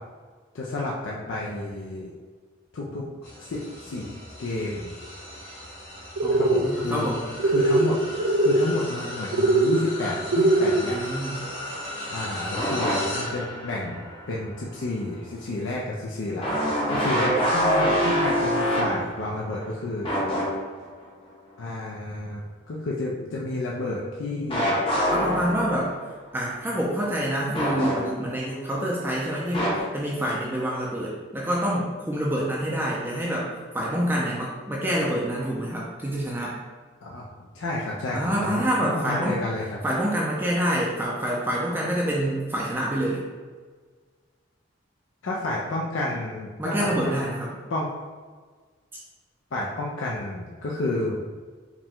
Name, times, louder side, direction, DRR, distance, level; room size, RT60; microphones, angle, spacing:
voice 1, 0.5-2.1 2.7-3.1 3.4-4.9 6.3-7.1 7.4-11.0 12.1-20.3 21.6-22.4 22.7-24.8 37.0-39.8 45.2-47.1 47.7-47.9 49.5-51.2, left 2 dB, 75° left, -3 dB, 0.5 m, -31 dB
sound 1, 3.2-18.7 19.3-19.5 20.8-20.9, left 1 dB, 55° left, 1.5 m, -38 dB
voice 2, 6.2-7.2 10.8-11.4 25.1-25.9 26.3-33.5 33.7-36.6 38.1-39.4 39.8-43.2 46.6-47.5, equal, 10° right, -4 dB, 0.4 m, -27 dB
sound 2, 6.2-6.7 7.4-8.6 9.3-9.8 10.3-10.8, right 2 dB, 80° right, 0.4 m, -20 dB
sound 3, 12.5-13.4 13.8-13.9 16.4-19.6 20.0-20.9 24.5-26.0 27.5-28.4 29.5-29.8, equal, 25° left, 0.7 m, -25 dB
4.8 x 2.2 x 3.6 m, 1.5 s
head